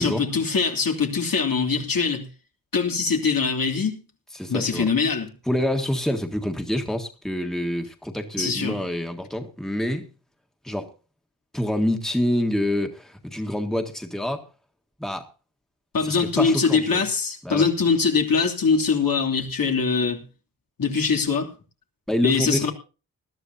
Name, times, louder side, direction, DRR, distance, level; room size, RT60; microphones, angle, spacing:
voice 1, 0.0-2.2 2.7-4.0 4.5-5.3 8.4-8.8 15.9-20.2 20.8-21.5 22.2-22.7, left 5 dB, 75° left, 3.1 m, -22 dB
voice 2, 4.3-4.9 5.5-10.1 10.6-10.9 11.5-14.4 15.0-15.3 16.0-17.0 17.4-17.7 22.1-22.7, left 1 dB, ahead, 1.7 m, -26 dB
20.5 x 13.0 x 2.8 m
wide cardioid pair, 125°, 35 cm